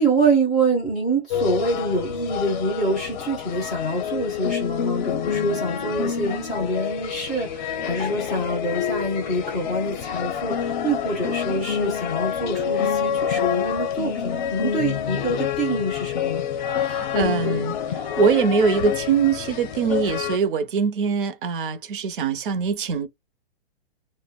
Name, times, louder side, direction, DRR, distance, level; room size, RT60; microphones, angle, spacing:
voice 1, 0.0-16.4, right 2 dB, ahead, 0.3 m, -25 dB
sound 1, 1.3-20.4, left 8 dB, 45° left, 0.6 m, -27 dB
voice 2, 16.8-23.1, right 6 dB, 55° right, 0.6 m, -23 dB
2.2 x 2.0 x 3.4 m
hypercardioid pair, 165°, 31 cm